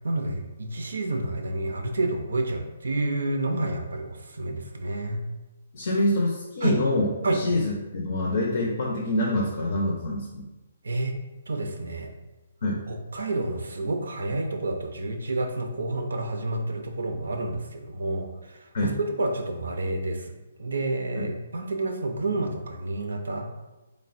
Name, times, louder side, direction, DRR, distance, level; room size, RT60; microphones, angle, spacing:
voice 1, 0.0-5.2 6.6-6.8 7.2-7.6 10.8-11.2 11.5-12.1 12.9-18.9 19.2-20.3 20.6-23.5, right 2 dB, 80° right, 4 dB, 0.4 m, -29 dB
voice 2, 5.7-10.4 12.6-12.8 18.7-18.9 21.2-21.3, left 1 dB, 60° left, -2 dB, 0.5 m, -26 dB
3.1 x 2.1 x 2.5 m, 1.1 s
hypercardioid pair, 140°, 0 cm